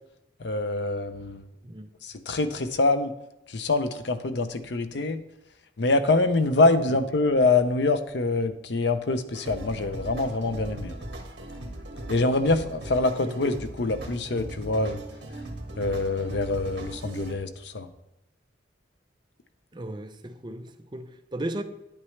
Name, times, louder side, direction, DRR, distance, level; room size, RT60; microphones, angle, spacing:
voice 1, 0.4-1.4 2.0-3.1 3.5-5.2 5.8-10.9 12.1-15.0 15.8-17.9, left 2 dB, 65° left, 0.7 m, -25 dB
sound 1, 9.3-17.3, right 1 dB, 60° right, 1.6 m, -38 dB
voice 2, 19.7-21.6, right 1 dB, 25° right, 0.6 m, -36 dB
10.0 x 8.8 x 3.2 m
head